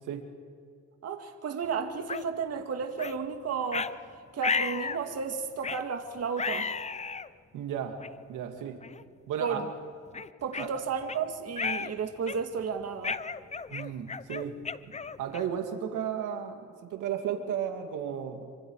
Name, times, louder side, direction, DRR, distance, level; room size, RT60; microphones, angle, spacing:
voice 1, 1.0-3.9 4.3-6.7 9.4-9.7 10.4-13.2, right 6 dB, 55° right, 5 dB, 2.2 m, -33 dB
sound 1, 2.1-2.2 3.0-3.2 3.7-3.9 4.4-5.0 5.6-5.9 6.4-7.3 8.0-8.1 8.8-9.0 9.5-9.6 10.1-11.2 11.6-11.9 12.3-12.6 13.0-15.6, left 5 dB, 20° left, 0.7 m, -33 dB
voice 2, 7.5-8.0 8.3-8.8 9.3-9.6 10.6-10.7 13.7-14.6 15.2-18.6, right 8 dB, 90° right, 5 dB, 2.3 m, -34 dB
27.0 x 25.0 x 4.8 m, 2.2 s
cardioid pair, 90°, 30 cm